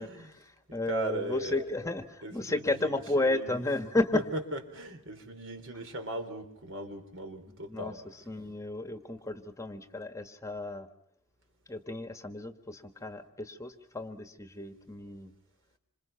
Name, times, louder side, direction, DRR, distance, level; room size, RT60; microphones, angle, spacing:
voice 1, 0.0-4.2 7.6-10.9 11.7-15.3, left 2 dB, 15° left, 9 dB, 1.4 m, -33 dB
voice 2, 0.9-1.6 2.2-3.5 4.1-8.0, right 1 dB, 60° right, 6 dB, 3.8 m, -38 dB
27.5 x 26.5 x 5.8 m, 0.72 s
head